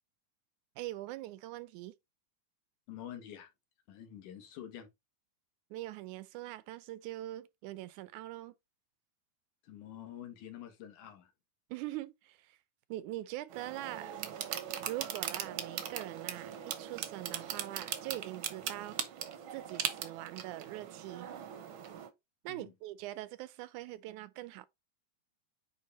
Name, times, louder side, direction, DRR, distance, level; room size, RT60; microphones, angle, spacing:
voice 1, 0.8-1.9 5.7-8.5 11.7-12.6 12.9-14.2 14.9-19.0 19.5-21.3 22.4-24.7, right 16 dB, 80° right, 2.0 m, -43 dB
voice 2, 2.9-3.5 3.9-4.9 9.6-11.3 22.5-22.7, left 10 dB, 80° left, 2.9 m, -47 dB
sound 1, 13.5-22.1, right 9 dB, 65° right, 1.3 m, -40 dB
9.4 x 3.4 x 4.1 m
omnidirectional pair, 3.5 m